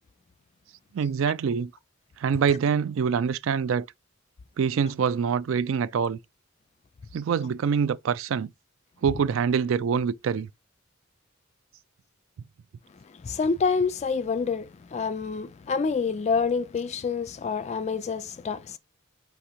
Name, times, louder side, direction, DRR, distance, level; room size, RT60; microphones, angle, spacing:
voice 1, 0.9-1.7 2.2-3.9 4.6-6.2 7.1-8.5 9.0-10.5, right 6 dB, 70° right, 0.3 m, -25 dB
voice 2, 13.1-18.8, left 5 dB, 35° left, 0.3 m, -27 dB
4.9 x 3.4 x 2.9 m
head